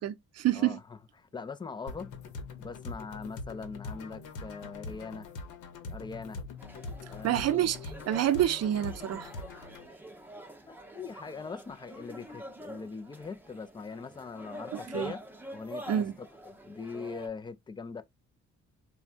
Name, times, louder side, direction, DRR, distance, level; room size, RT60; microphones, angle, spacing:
voice 1, 0.0-0.8 7.2-7.8 8.1-9.3 14.9-15.1 15.9-16.1, right 12 dB, 55° right, 0.5 m, -27 dB
voice 2, 0.5-2.1 2.6-5.3 5.9-6.4 7.0-7.7 10.7-15.2 15.5-18.0, left 4 dB, 15° left, 0.3 m, -41 dB
sound 1, 1.9-9.9, left 3 dB, 90° left, 0.9 m, -43 dB
sound 2, 6.6-17.3, equal, 5° right, 0.7 m, -46 dB
3.3 x 2.2 x 2.5 m
cardioid pair, 90°, 30 cm